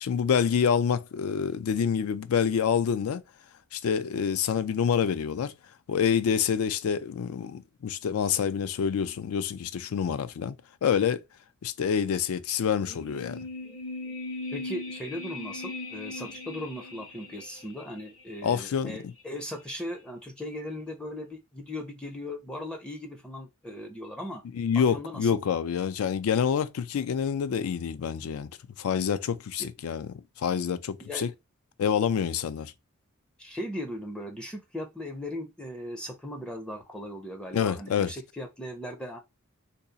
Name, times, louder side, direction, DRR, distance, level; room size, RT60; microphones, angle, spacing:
voice 1, 0.0-3.2 3.7-5.5 5.9-10.6 10.8-11.2 11.6-13.4 18.4-19.1 24.5-28.5 28.8-31.3 31.8-32.7 37.5-38.1, left 7 dB, 85° left, 0.4 m, -27 dB
sound 1, 12.8-18.1 18.4-18.5, left 2 dB, 65° left, 1.0 m, -39 dB
voice 2, 14.5-24.4 24.9-25.4 29.6-29.7 31.0-31.3 33.4-39.2, left 1 dB, 5° left, 0.4 m, -38 dB
2.7 x 2.3 x 3.8 m
head